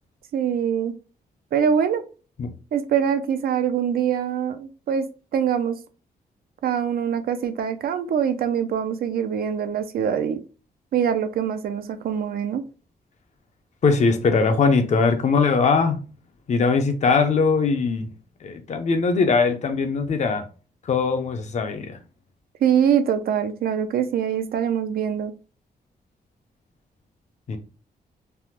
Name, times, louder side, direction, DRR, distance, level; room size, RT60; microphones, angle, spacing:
voice 1, 0.3-0.9 1.5-2.0 2.7-5.1 5.3-5.8 6.6-10.4 10.9-12.6 22.6-25.3, right 8 dB, 70° right, 0.4 m, -23 dB
voice 2, 13.8-16.0 16.5-18.1 18.4-20.5 20.8-22.0 27.5-27.6, left 4 dB, 45° left, 0.5 m, -21 dB
3.3 x 2.1 x 2.8 m
wide cardioid pair, 160°, 16 cm